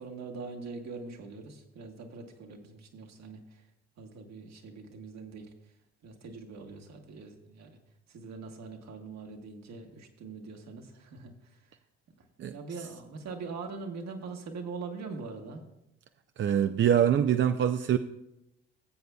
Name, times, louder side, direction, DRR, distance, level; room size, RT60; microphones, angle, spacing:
voice 1, 0.0-3.7 4.0-5.5 6.0-7.8 8.1-11.8 12.5-15.6, right 4 dB, 60° right, 1.6 m, -42 dB
voice 2, 16.4-18.0, right 9 dB, 40° right, 0.5 m, -24 dB
19.0 x 7.9 x 2.3 m
hypercardioid pair, 55°, 30 cm